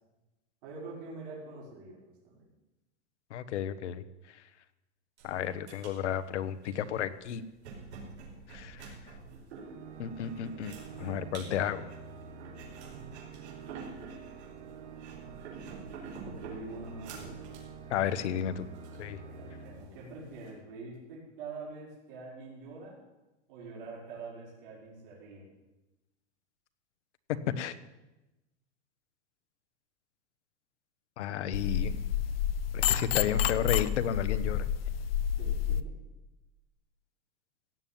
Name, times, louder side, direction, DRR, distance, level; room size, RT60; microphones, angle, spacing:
voice 1, 0.6-2.4 16.2-17.4 19.1-23.0 23.5-25.4 35.4-36.0, right 3 dB, 45° right, -5 dB, 6.1 m, -45 dB
voice 2, 3.3-4.0 5.2-7.4 8.5-9.0 10.0-11.9 17.9-18.7 19.0-19.2 27.6-27.7 31.2-32.0 32.7-34.7, left 9 dB, 75° left, 12 dB, 1.2 m, -33 dB
sound 1, 5.2-20.5, right 4 dB, 65° right, 5.2 m, -48 dB
Organ, 9.6-20.5, right 5 dB, 85° right, 2.4 m, -47 dB
sound 2, 31.5-35.8, left 9 dB, 55° left, 0.8 m, -29 dB
17.0 x 7.2 x 9.3 m, 1.0 s
supercardioid pair, 180°, 35 cm